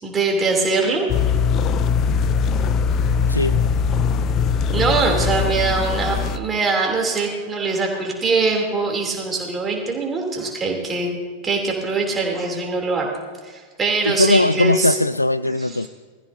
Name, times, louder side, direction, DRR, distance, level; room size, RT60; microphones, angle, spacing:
voice 1, 0.0-1.1 4.7-11.2 11.4-13.1 13.4-15.0 15.6-15.9, right 3 dB, 20° right, 0 dB, 3.2 m, -22 dB
sound 1, 1.1-6.4, left 6 dB, 35° left, 0.6 m, -21 dB
voice 2, 3.3-3.6 14.1-15.9, left 2 dB, 85° left, 17 dB, 0.3 m, -19 dB
21.0 x 14.5 x 2.8 m, 1.5 s
figure-of-eight pair, 90°, 0 cm